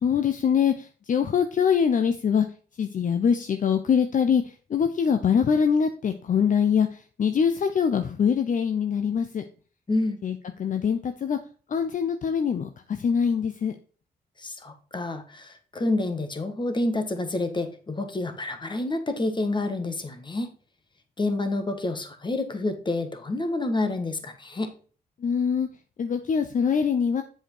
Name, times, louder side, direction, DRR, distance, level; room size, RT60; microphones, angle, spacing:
voice 1, 0.0-2.5 2.8-4.4 4.7-6.9 7.2-9.4 10.2-11.4 11.7-13.7 25.2-25.7 26.0-27.2, left 7 dB, 50° left, 8 dB, 0.7 m, -23 dB
voice 2, 14.4-20.5 21.2-24.7, left 2 dB, 30° left, 8 dB, 1.5 m, -28 dB
7.7 x 5.0 x 4.4 m, 0.39 s
cardioid pair, 80°, 17 cm